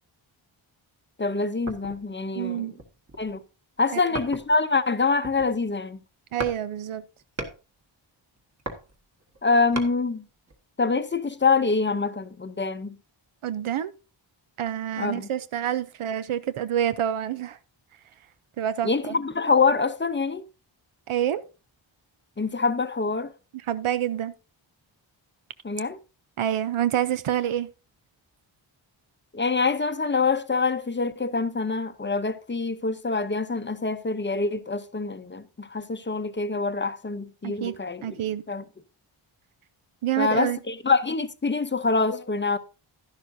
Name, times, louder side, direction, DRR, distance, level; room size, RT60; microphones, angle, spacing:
voice 1, 1.2-2.7 3.2-3.4 3.8-6.0 9.4-10.2 10.8-13.0 15.0-15.3 18.8-20.5 22.4-23.3 25.6-26.0 29.3-38.2 38.5-38.6 40.2-42.6, left 4 dB, 25° left, 0.6 m, -25 dB
sound 1, 1.7-2.1 2.7-3.4 4.1-4.7 5.1-5.8 6.4-6.6 6.9-7.6 8.4-9.9 10.5-10.6, right 1 dB, 35° right, 1.6 m, -36 dB
voice 2, 2.3-2.7 3.9-4.2 6.3-7.0 13.4-13.9 14.6-17.6 18.6-19.2 21.1-21.4 23.5-24.3 26.4-27.7 37.4-37.8 38.0-38.4 40.0-40.6, right 10 dB, 85° right, 0.7 m, -27 dB
11.5 x 11.0 x 2.6 m
wide cardioid pair, 130°, 48 cm